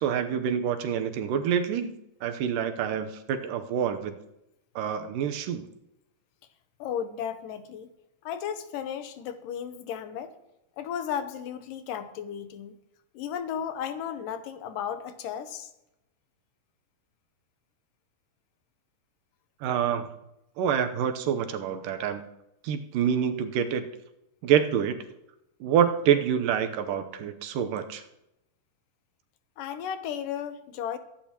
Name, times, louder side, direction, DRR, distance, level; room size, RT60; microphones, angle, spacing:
voice 1, 0.0-1.9 2.2-4.2 4.8-5.6 19.6-20.1 20.6-22.2 22.6-23.9 24.4-25.0 25.6-28.0, right 8 dB, 90° right, 7 dB, 2.6 m, -27 dB
voice 2, 6.8-7.9 8.3-10.3 10.8-12.7 13.1-15.7 29.6-31.0, left 8 dB, 85° left, 9 dB, 2.6 m, -34 dB
23.0 x 10.5 x 3.0 m, 0.87 s
omnidirectional pair, 3.8 m